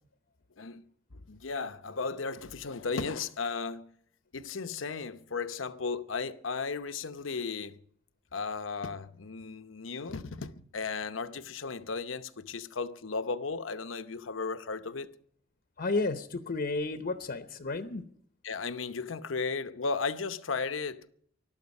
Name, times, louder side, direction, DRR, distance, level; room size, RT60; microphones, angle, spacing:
voice 1, 1.1-3.9 4.3-7.8 8.3-15.1 18.4-21.1, left 4 dB, 80° left, 0.8 m, -35 dB
voice 2, 15.8-18.0, left 3 dB, 50° left, 0.8 m, -32 dB
21.0 x 12.5 x 5.4 m
head